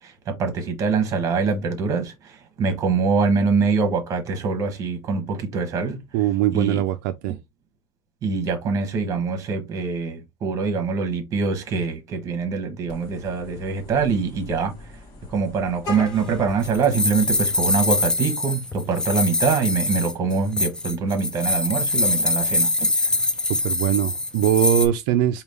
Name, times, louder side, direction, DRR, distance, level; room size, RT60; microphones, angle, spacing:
voice 1, 0.0-6.0 6.5-6.8 8.2-14.9 15.3-23.1, right 4 dB, 30° right, 1.1 m, -24 dB
voice 2, 6.1-7.4 23.5-25.4, right 12 dB, 70° right, 0.4 m, -21 dB
Vehicle horn car horn honking, 12.9-18.0, left 3 dB, 35° left, 1.2 m, -41 dB
sound 1, 16.0-24.9, left 2 dB, 5° left, 0.4 m, -24 dB
5.0 x 2.3 x 3.4 m
cardioid pair, 170°, 11 cm